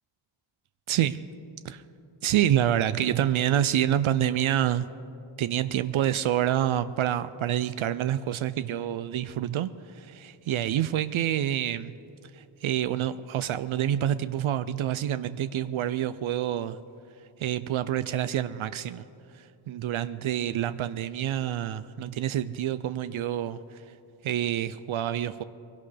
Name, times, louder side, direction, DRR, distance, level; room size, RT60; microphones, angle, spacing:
voice 1, 0.9-1.2 1.6-1.8 2.2-4.8 5.4-11.9 12.3-16.8 17.4-19.0 19.3-23.8 24.2-25.4, right 11 dB, 75° right, 13 dB, 0.5 m, -27 dB
22.0 x 17.0 x 3.3 m, 2.7 s
wide cardioid pair, 125°, 49 cm